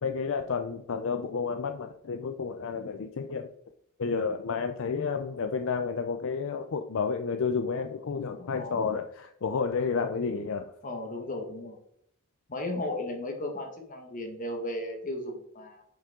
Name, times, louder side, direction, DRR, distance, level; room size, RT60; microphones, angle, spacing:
voice 1, 0.0-3.5 4.0-10.7, left 5 dB, 60° left, 7 dB, 0.5 m, -31 dB
voice 2, 8.4-8.9 10.8-11.8 12.5-15.8, left 1 dB, 40° left, 3 dB, 1.6 m, -35 dB
8.8 x 5.4 x 3.7 m, 0.70 s
head